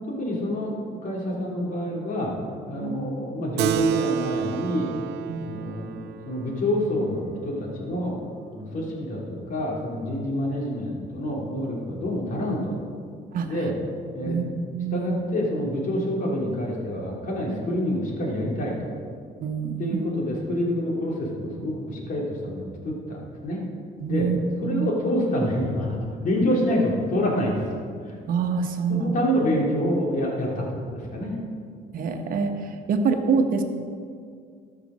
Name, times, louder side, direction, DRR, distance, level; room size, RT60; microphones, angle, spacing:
voice 1, 0.1-0.8 1.0-2.3 2.7-4.9 5.4-8.1 8.5-12.7 13.4-13.7 14.1-14.4 14.9-18.7 19.8-23.6 24.1-24.3 24.6-26.0 26.2-27.7 28.0-28.2 28.9-31.3, left 1 dB, 50° left, -3 dB, 3.3 m, -27 dB
Keyboard (musical), 3.6-8.5, right 9 dB, 85° right, 0.6 m, -30 dB
voice 2, 14.3-15.2 19.4-20.1 24.0-24.9 28.3-29.2 31.9-33.6, right 5 dB, 55° right, 5 dB, 1.2 m, -26 dB
13.5 x 6.0 x 6.4 m, 2.2 s
cardioid pair, 110°, 17 cm